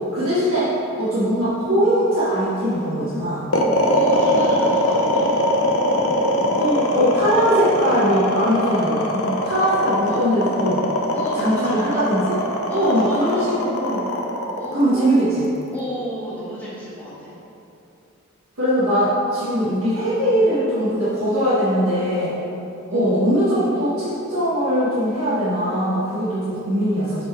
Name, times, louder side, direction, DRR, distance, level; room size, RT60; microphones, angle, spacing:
voice 1, 0.1-0.7 1.0-3.4 6.5-10.8 11.3-12.4 12.7-14.0 14.7-15.5 18.6-22.3 22.9-27.2, equal, 85° right, -11 dB, 1.5 m, -21 dB
sound 1, 3.5-15.8, left 1 dB, 85° left, 0.8 m, -21 dB
voice 2, 3.9-5.4 9.6-9.7 10.0-10.2 11.1-12.0 12.7-13.5 14.5-15.2 15.7-17.3 22.9-23.2, equal, 5° left, -14 dB, 1.5 m, -32 dB
7.7 x 4.0 x 4.6 m, 2.8 s
head